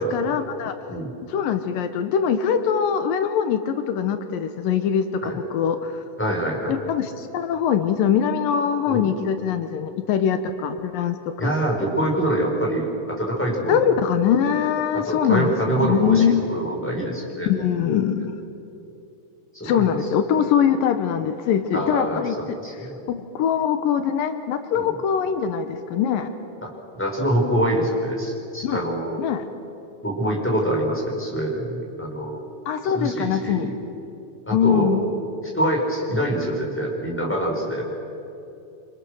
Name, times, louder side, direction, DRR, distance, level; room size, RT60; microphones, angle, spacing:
voice 1, 0.0-0.7 1.2-6.0 6.7-11.5 13.7-16.4 17.5-18.3 19.6-22.4 23.1-26.3 28.6-28.8 29.2-29.4 32.7-33.7 34.5-35.1, left 8 dB, 80° left, 8 dB, 2.7 m, -22 dB
voice 2, 6.2-6.7 8.9-9.1 11.4-13.8 14.9-17.5 19.5-19.9 21.7-23.0 24.8-24.9 26.6-26.7 26.9-29.2 30.0-32.4 32.8-33.7 34.5-35.0 35.5-37.9, right 1 dB, 5° left, -1 dB, 4.7 m, -25 dB
28.0 x 26.5 x 6.4 m, 2.8 s
omnidirectional pair, 4.0 m